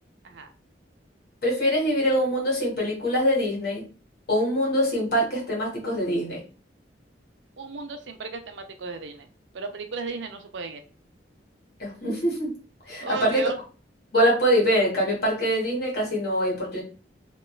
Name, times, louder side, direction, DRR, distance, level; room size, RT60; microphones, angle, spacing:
voice 1, 1.4-3.8 4.3-6.4 11.8-12.5 12.8-13.4 14.1-16.8, equal, 60° left, -3 dB, 1.5 m, -24 dB
voice 2, 7.6-9.3 9.5-10.8 13.0-13.6, right 4 dB, 90° right, 7 dB, 0.5 m, -35 dB
3.1 x 2.9 x 2.3 m, 0.37 s
head